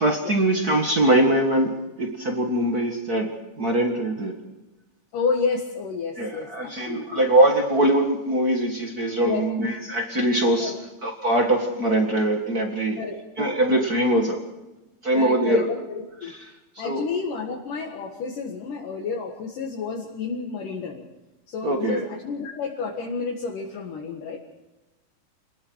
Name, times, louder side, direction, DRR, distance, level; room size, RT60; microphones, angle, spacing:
voice 1, 0.0-3.3 3.6-4.4 6.2-13.0 13.4-14.4 15.0-15.7 16.8-17.0 21.6-22.0, right 1 dB, 40° right, 3 dB, 1.4 m, -22 dB
voice 2, 5.1-7.2 9.2-9.5 10.6-10.8 13.0-13.6 15.1-16.3 16.8-21.1 21.5-24.4, left 5 dB, 65° left, 0 dB, 3.2 m, -30 dB
27.0 x 20.0 x 4.7 m, 1.1 s
omnidirectional pair, 4.3 m